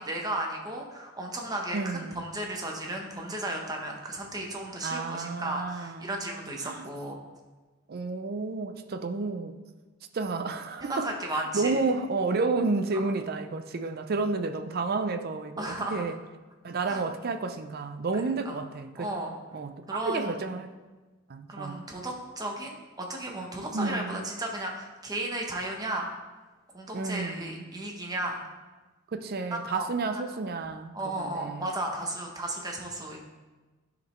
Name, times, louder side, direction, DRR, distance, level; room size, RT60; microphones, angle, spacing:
voice 1, 0.0-7.2 10.8-11.8 12.9-13.0 15.6-16.0 16.9-17.0 18.4-18.6 19.0-19.4 19.9-20.4 21.5-26.1 26.7-28.4 29.5-29.9 30.1-30.2 30.9-33.2, right 1 dB, 20° right, 1 dB, 0.9 m, -34 dB
voice 2, 1.7-2.2 4.8-6.1 6.6-6.9 7.9-9.6 10.1-16.2 16.6-19.1 19.5-20.7 21.3-21.8 23.7-24.2 26.9-27.7 29.1-31.7, right 3 dB, 50° right, 9 dB, 0.5 m, -31 dB
10.5 x 5.2 x 3.1 m, 1.2 s
head